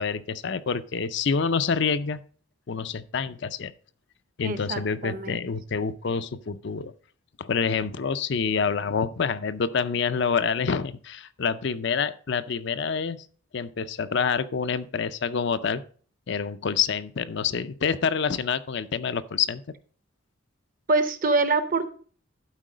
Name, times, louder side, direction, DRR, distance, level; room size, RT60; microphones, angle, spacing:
voice 1, 0.0-2.2 2.7-3.7 4.4-6.9 7.4-13.2 13.5-15.8 16.3-19.6, left 6 dB, 55° left, 12 dB, 0.5 m, -27 dB
voice 2, 4.4-5.4 20.9-21.9, right 3 dB, 40° right, 11 dB, 0.8 m, -25 dB
11.5 x 4.6 x 4.9 m, 0.44 s
head